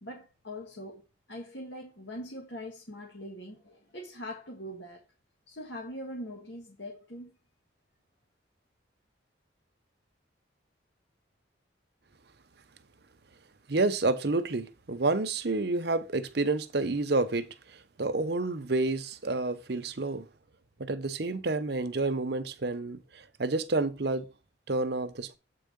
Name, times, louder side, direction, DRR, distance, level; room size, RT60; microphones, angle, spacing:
voice 1, 0.0-1.0 1.3-5.0 5.5-7.3, equal, 70° left, 1.7 m, -42 dB
voice 2, 13.7-20.3 20.8-24.3 24.7-25.4, right 3 dB, 55° right, 0.8 m, -29 dB
8.3 x 4.7 x 5.2 m
head